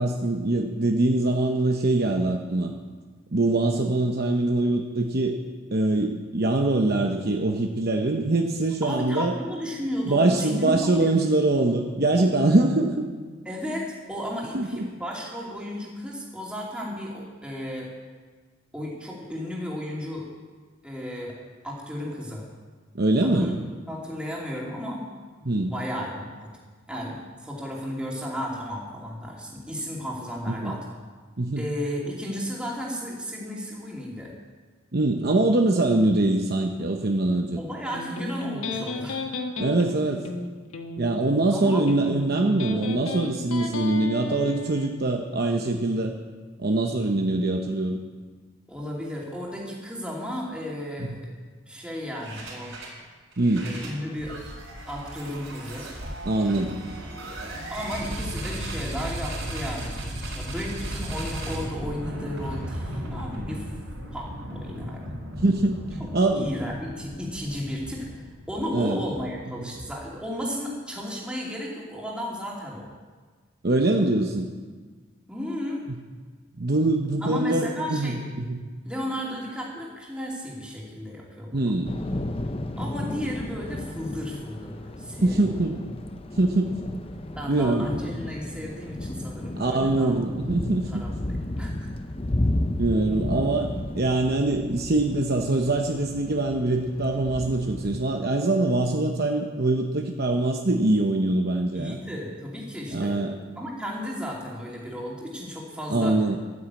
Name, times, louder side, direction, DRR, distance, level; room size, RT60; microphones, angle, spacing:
voice 1, 0.0-2.7 3.3-5.4 5.7-9.3 10.1-13.1 14.5-14.9 22.9-23.6 25.5-25.7 30.5-30.8 31.4-31.6 34.9-37.6 39.6-40.3 41.0-46.1 46.6-48.0 51.0-51.1 53.4-53.7 56.2-56.8 65.4-65.8 66.1-66.5 68.7-69.0 69.6-69.7 73.6-74.5 75.9-76.0 76.6-78.6 81.5-81.9 85.2-85.8 86.4-86.7 87.5-87.9 89.5-91.0 92.8-102.0 102.9-103.4 105.9-106.4, right 2 dB, 45° right, 3 dB, 0.9 m, -23 dB
voice 2, 8.8-11.2 13.4-17.9 18.7-20.3 20.8-21.4 21.6-22.5 23.2-23.6 23.9-25.1 25.4-26.5 26.9-30.8 31.6-34.3 37.6-39.2 41.5-41.8 48.7-51.3 51.7-52.7 53.6-54.4 54.9-55.9 57.7-63.7 64.1-65.1 66.3-72.9 75.3-75.8 77.2-78.2 78.8-81.7 82.8-85.5 87.3-90.1 90.9-91.9 101.7-103.2 103.6-106.2, equal, 5° right, -4 dB, 2.8 m, -34 dB
Electric guitar, 37.9-44.9, left 3 dB, 85° left, 1.4 m, -34 dB
sound 1, 52.2-53.0 53.3-70.3, right 1 dB, 65° right, 4.6 m, -36 dB
Thunder / Rain, 81.8-98.0, left 1 dB, 25° left, 0.6 m, -33 dB
12.5 x 9.5 x 8.4 m, 1.5 s
head